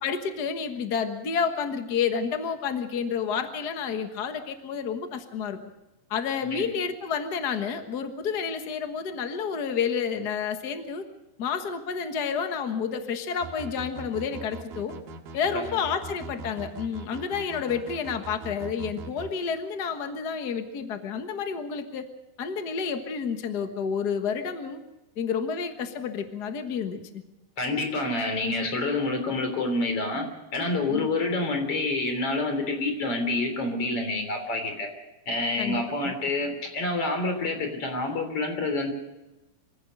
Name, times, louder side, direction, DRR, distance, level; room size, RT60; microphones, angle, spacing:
voice 1, 0.0-5.6 6.1-11.0 11.4-14.9 15.3-22.1 22.4-24.8 25.2-27.2 30.9-31.1 35.6-36.1, left 6 dB, 70° left, 7 dB, 0.9 m, -30 dB
sound 1, 13.4-19.3, right 4 dB, 75° right, 3.4 m, -41 dB
voice 2, 27.6-30.3 30.5-34.9 35.3-38.9, left 2 dB, 40° left, 5 dB, 4.2 m, -28 dB
25.0 x 16.5 x 6.5 m, 0.99 s
omnidirectional pair, 4.2 m